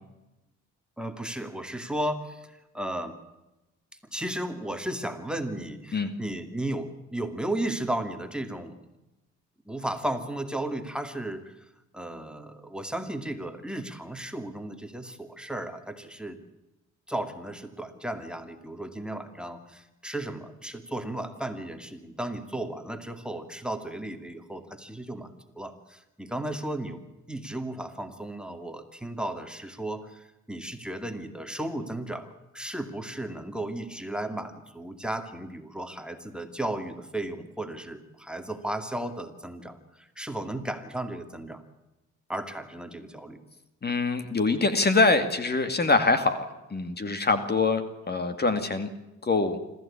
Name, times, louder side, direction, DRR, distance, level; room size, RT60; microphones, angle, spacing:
voice 1, 1.0-3.2 4.1-8.7 9.7-11.6 11.9-16.4 17.1-27.0 27.3-41.6 42.3-43.4, right 1 dB, 5° right, 6 dB, 2.4 m, -34 dB
voice 2, 43.8-48.9 49.2-49.6, left 3 dB, 35° left, 10 dB, 2.3 m, -24 dB
26.0 x 14.5 x 8.7 m, 1.0 s
cardioid pair, 90°, 30 cm